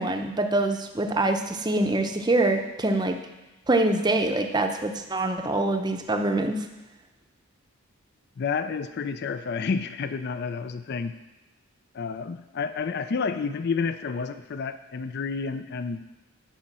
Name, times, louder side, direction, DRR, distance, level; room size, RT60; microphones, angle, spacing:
voice 1, 0.0-3.2 3.7-6.7, right 2 dB, 20° right, 5 dB, 0.6 m, -25 dB
voice 2, 8.4-11.1 11.9-16.0, left 5 dB, 45° left, 11 dB, 0.4 m, -30 dB
10.5 x 5.5 x 7.4 m, 1.1 s
head